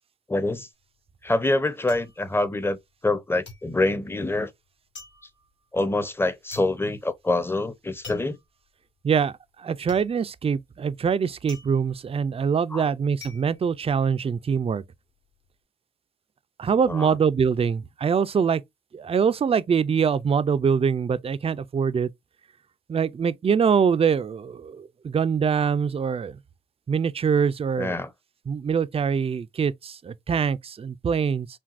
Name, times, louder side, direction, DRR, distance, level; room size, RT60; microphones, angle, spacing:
voice 1, 0.3-0.7 1.2-2.8 3.0-4.5 5.7-8.4 12.7-12.9 16.9-17.1 27.8-28.1, left 2 dB, 10° left, 0.6 m, -25 dB
sound 1, 0.8-3.1 3.4-14.6 14.9-15.5, left 3 dB, 80° left, 1.9 m, -48 dB
voice 2, 9.6-14.8 16.6-18.6 18.9-22.1 22.9-26.4 26.9-28.0 28.5-31.5, right 6 dB, 30° right, 0.4 m, -24 dB
5.8 x 2.2 x 2.5 m
cardioid pair, 80°, 18 cm